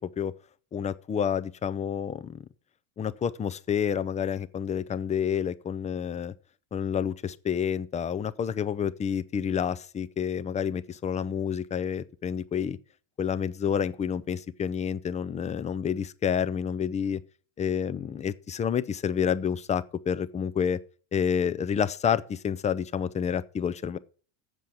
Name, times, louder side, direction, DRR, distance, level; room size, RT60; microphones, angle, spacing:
voice 1, 0.7-2.4 3.0-6.3 6.7-12.8 13.2-17.2 17.6-20.8 21.1-24.0, left 7 dB, 15° left, 0.4 m, -29 dB
7.6 x 6.4 x 7.0 m
supercardioid pair, 115°, 42 cm